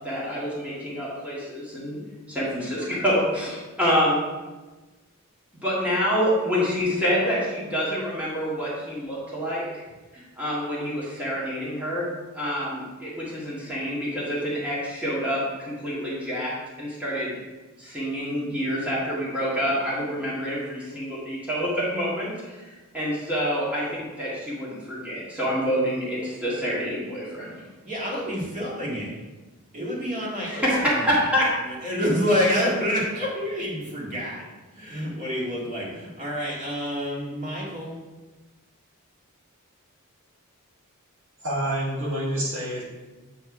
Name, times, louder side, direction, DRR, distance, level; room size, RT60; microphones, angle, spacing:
voice 1, 0.0-2.0 2.3-4.2 5.6-9.6 10.4-12.0 12.3-16.5 16.8-17.4 17.8-22.3 22.9-27.5 30.5-31.5, equal, 5° right, -8 dB, 1.8 m, -27 dB
voice 2, 27.8-29.1 29.7-30.6 30.9-31.2 31.6-34.4 34.7-38.0, equal, 35° right, -4 dB, 2.0 m, -28 dB
voice 3, 41.4-42.8, right 1 dB, 60° right, -5 dB, 1.9 m, -27 dB
8.4 x 3.5 x 4.7 m, 1.2 s
head